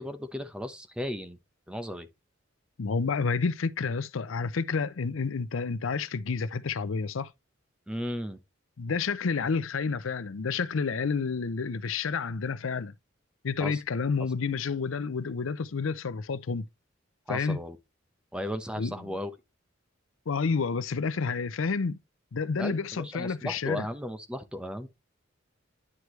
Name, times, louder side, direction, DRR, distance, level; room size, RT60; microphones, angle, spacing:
voice 1, 0.0-1.4 1.7-2.1 7.9-8.4 13.6-13.8 17.3-17.8 18.3-19.3 22.6-24.9, equal, 5° right, 0.8 m, -35 dB
voice 2, 2.8-7.3 8.8-12.9 13.4-16.7 17.3-17.6 18.8-18.9 20.3-22.0 22.3-23.9, left 5 dB, 80° left, 0.6 m, -29 dB
9.8 x 4.6 x 3.1 m
head